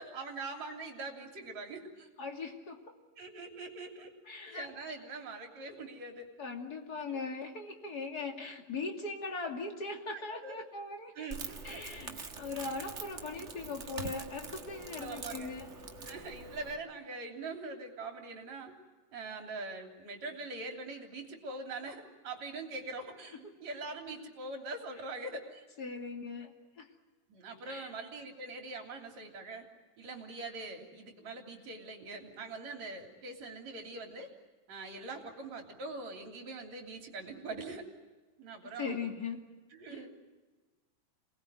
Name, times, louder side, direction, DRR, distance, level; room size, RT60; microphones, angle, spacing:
voice 1, 0.0-2.1 3.2-4.1 4.4-6.3 7.1-7.2 10.3-10.6 11.1-12.1 15.0-15.5 16.1-18.7 19.1-25.7 27.3-29.6 30.0-34.3 34.7-37.9 38.4-39.0 39.7-40.1, right 3 dB, 55° right, 3 dB, 4.4 m, -43 dB
voice 2, 2.2-2.8 4.3-4.7 6.4-11.3 11.6-15.7 16.0-16.1 25.8-26.9 27.6-27.9 38.8-39.5 39.9-40.0, left 4 dB, 30° left, 3 dB, 2.7 m, -40 dB
Crackle, 11.3-16.7, right 3 dB, 40° right, 1.0 m, -44 dB
27.5 x 20.0 x 9.2 m, 1.3 s
omnidirectional pair, 3.9 m